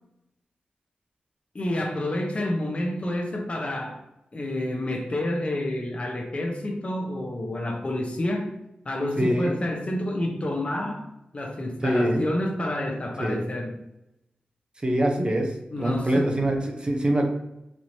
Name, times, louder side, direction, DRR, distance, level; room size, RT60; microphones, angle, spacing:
voice 1, 1.5-4.0 4.3-8.5 8.8-11.1 11.3-13.8 15.7-16.4, left 1 dB, 40° left, 2 dB, 0.7 m, -29 dB
voice 2, 9.2-9.6 11.8-12.2 13.2-13.4 14.8-15.5 15.8-17.3, right 1 dB, 30° right, 2 dB, 0.7 m, -24 dB
4.3 x 3.0 x 2.8 m, 0.88 s
wide cardioid pair, 80°, 3 cm